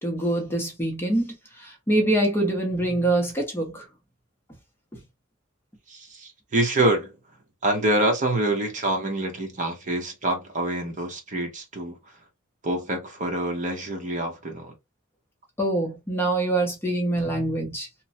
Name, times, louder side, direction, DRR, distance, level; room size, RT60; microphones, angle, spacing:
voice 1, 0.0-3.9 15.6-17.9, right 1 dB, 10° left, 0.6 m, -25 dB
voice 2, 5.9-7.1 7.6-12.0 12.6-14.7, right 1 dB, 40° right, 0.8 m, -26 dB
2.9 x 2.1 x 2.7 m
head